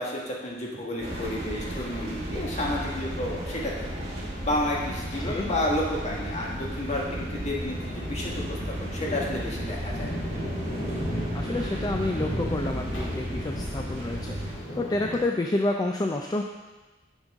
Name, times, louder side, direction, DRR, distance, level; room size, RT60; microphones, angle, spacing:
voice 1, 0.0-3.7 4.4-10.1, left 1 dB, 40° left, -3 dB, 1.6 m, -31 dB
sound 1, 1.0-15.2, equal, 85° left, 2.3 m, -38 dB
sound 2, 1.0-14.5, equal, 35° right, 1.8 m, -34 dB
voice 2, 11.3-16.4, left 2 dB, 20° left, 2 dB, 0.4 m, -29 dB
10.0 x 5.5 x 3.6 m, 1.2 s
head